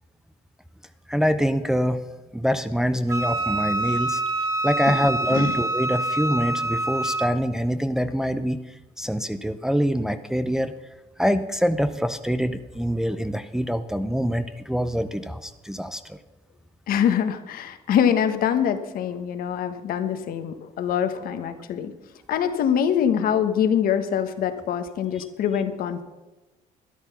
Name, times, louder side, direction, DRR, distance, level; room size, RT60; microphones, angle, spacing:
voice 1, 1.1-2.1 2.3-4.2 4.6-10.7 11.2-16.2, equal, 5° right, 9 dB, 0.6 m, -25 dB
Wind instrument woodwind instrument, 3.1-7.3, right 2 dB, 20° right, 1.3 m, -26 dB
voice 2, 16.9-21.9 22.3-26.0, left 8 dB, 65° left, 9 dB, 1.2 m, -24 dB
12.5 x 10.5 x 5.9 m, 1.1 s
cardioid pair, 100°, 16 cm